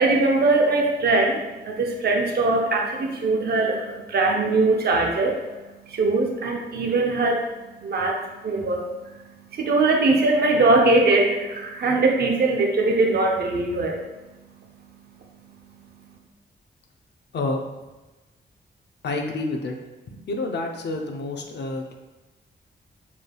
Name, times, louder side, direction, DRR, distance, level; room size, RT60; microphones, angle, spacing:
voice 1, 0.0-14.5 14.9-15.0 15.4-16.2, right 2 dB, 60° right, 1 dB, 0.7 m, -22 dB
voice 2, 19.0-19.8 20.1-21.9, left 2 dB, 70° left, 3 dB, 0.7 m, -28 dB
6.9 x 3.3 x 2.3 m, 1.1 s
wide cardioid pair, 170°, 18 cm